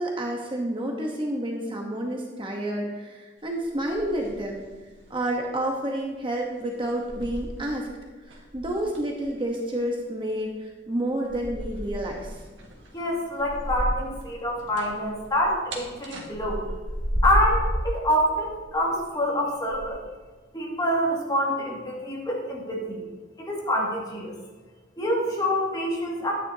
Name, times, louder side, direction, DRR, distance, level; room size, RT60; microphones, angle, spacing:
voice 1, 0.0-4.6 5.1-7.9 8.3-12.4, right 1 dB, 25° right, 0 dB, 1.0 m, -29 dB
sound 1, 3.7-4.8 5.0-5.3 6.2-6.3 6.8-7.9 8.3-9.2 11.2-14.2 14.5-17.9 18.7-19.1 19.7-19.9, equal, 70° right, 1.6 m, -31 dB
voice 2, 12.9-16.6 17.2-20.0 20.5-23.0 23.4-24.4 25.0-26.3, equal, 20° left, -3 dB, 2.1 m, -26 dB
11.5 x 9.6 x 2.8 m, 1.3 s
head